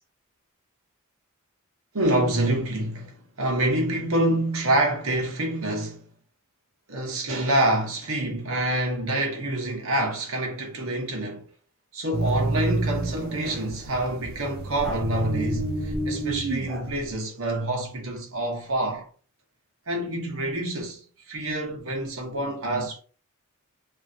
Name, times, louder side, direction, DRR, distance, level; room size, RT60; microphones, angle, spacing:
voice 1, 1.9-6.0 6.9-11.5 11.9-19.1 19.9-23.0, right 1 dB, 70° right, 1.0 m, -27 dB
sound 1, 12.1-17.1, right 2 dB, 45° right, 0.4 m, -29 dB
sound 2, 13.2-13.3 14.8-16.0 16.7-17.6, equal, ahead, 0.6 m, -41 dB
2.6 x 2.4 x 2.7 m
head